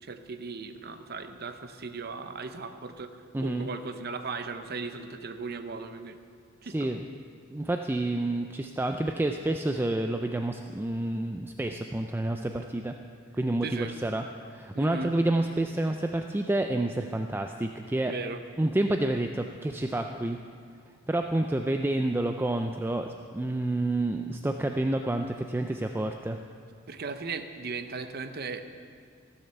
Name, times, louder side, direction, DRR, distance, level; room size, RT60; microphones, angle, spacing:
voice 1, 0.0-6.2 6.6-6.9 13.6-13.9 14.7-15.1 18.1-18.4 26.9-28.7, right 4 dB, 50° right, 8 dB, 0.7 m, -37 dB
voice 2, 3.3-3.7 6.6-7.0 7.5-13.0 13.4-18.1 18.6-20.4 21.1-26.4, right 1 dB, 10° right, 5 dB, 0.3 m, -29 dB
15.0 x 7.3 x 6.8 m, 2.2 s
head